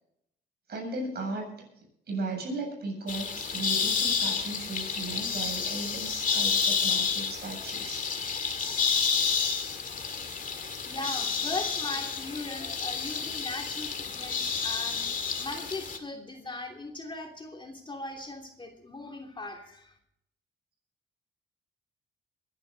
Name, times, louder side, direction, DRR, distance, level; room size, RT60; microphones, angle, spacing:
voice 1, 0.7-1.5 2.1-8.1, right 2 dB, 55° right, 1 dB, 7.6 m, -36 dB
sound 1, 3.1-16.0, left 6 dB, 40° left, 2.1 m, -30 dB
voice 2, 10.8-19.9, left 2 dB, 25° left, 2 dB, 2.8 m, -39 dB
22.5 x 11.0 x 4.0 m, 0.76 s
cardioid pair, 90°, 20 cm